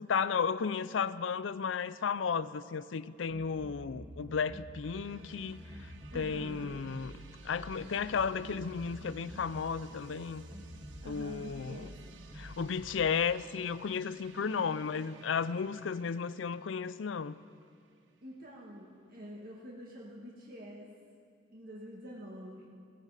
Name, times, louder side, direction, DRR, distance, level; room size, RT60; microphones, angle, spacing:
voice 1, 0.0-5.6 6.1-10.4 11.0-11.9 12.3-17.4, left 6 dB, 85° left, 16 dB, 0.5 m, -34 dB
sound 1, 3.3-4.8 5.1-6.3 6.9-7.2 7.5-9.6 9.9-11.1 11.7-12.0 12.3-12.9, equal, 25° right, 1.3 m, -49 dB
sound 2, 4.8-18.6, right 4 dB, 75° right, 1.1 m, -57 dB
voice 2, 6.1-6.8 11.0-12.0 14.4-14.9 18.2-20.9 21.5-22.7, equal, 55° right, -3 dB, 1.8 m, -47 dB
16.5 x 15.5 x 5.0 m, 2.2 s
head